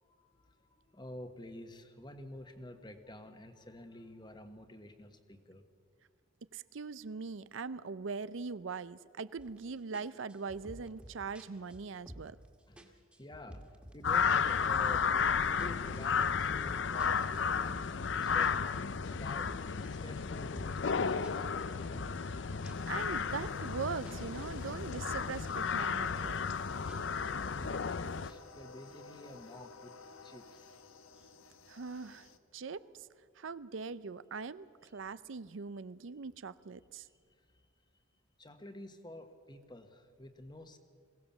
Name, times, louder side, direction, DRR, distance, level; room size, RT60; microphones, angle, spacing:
voice 1, 0.0-5.6 12.7-13.6 13.9-21.5 27.3-29.9 30.2-30.7 37.1-37.6 38.4-40.8, left 1 dB, 20° left, 8 dB, 1.3 m, -50 dB
voice 2, 6.5-12.4 22.2-22.4 22.9-26.4 31.7-33.1 33.4-37.1, right 5 dB, 70° right, 16 dB, 0.6 m, -41 dB
sound 1, 9.4-9.6 9.9-12.5 12.8-14.3 14.5-15.2 15.6-18.1 18.4-20.9 21.2-23.8 24.0-25.6 25.8-26.5 26.9-28.3, equal, 5° right, 1.8 m, -52 dB
sound 2, 14.0-28.3, left 6 dB, 60° left, 0.6 m, -33 dB
sound 3, 22.7-32.4, left 3 dB, 90° left, 1.2 m, -54 dB
21.5 x 17.0 x 7.2 m, 2.1 s
head